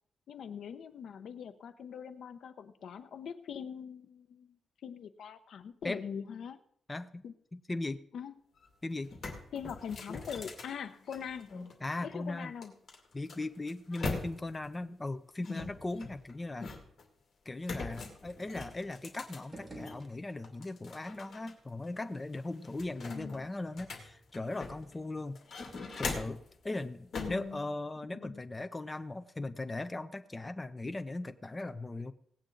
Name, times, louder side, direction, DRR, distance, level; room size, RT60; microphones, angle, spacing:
voice 1, 0.3-4.6 4.8-6.6 7.2-7.3 8.1-8.3 9.5-11.5 12.0-12.7 23.1-23.5 27.1-27.6 28.1-28.4, left 7 dB, 70° left, 10 dB, 0.8 m, -42 dB
voice 2, 6.9-7.2 7.5-8.0 8.8-9.1 11.8-12.5 13.1-16.7 17.5-25.4 26.0-32.1, left 2 dB, 20° left, 10 dB, 0.5 m, -38 dB
sound 1, 8.6-8.7 9.0-11.7 12.6-14.6 15.4-17.0 17.6-20.0 20.4-21.5 21.8-21.9 22.3-24.9 25.3-26.5 27.1-27.5, left 3 dB, 50° left, 2.4 m, -41 dB
sound 2, 19.3-20.8, right 1 dB, 20° right, 2.5 m, -49 dB
18.0 x 8.7 x 3.9 m, 0.67 s
wide cardioid pair, 130°, 0 cm